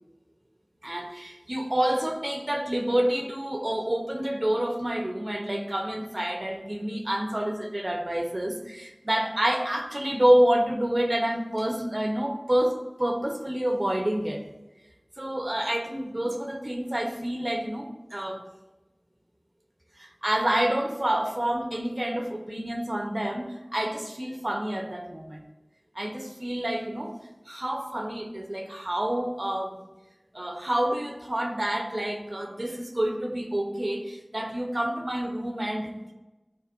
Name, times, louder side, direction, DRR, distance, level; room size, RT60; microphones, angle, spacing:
voice 1, 0.8-14.4 15.2-18.5 20.0-25.4 25.9-27.1 27.5-29.8 30.3-36.1, right 1 dB, 50° right, 2 dB, 1.0 m, -28 dB
12.0 x 4.1 x 2.6 m, 1.1 s
wide cardioid pair, 40°, 0 cm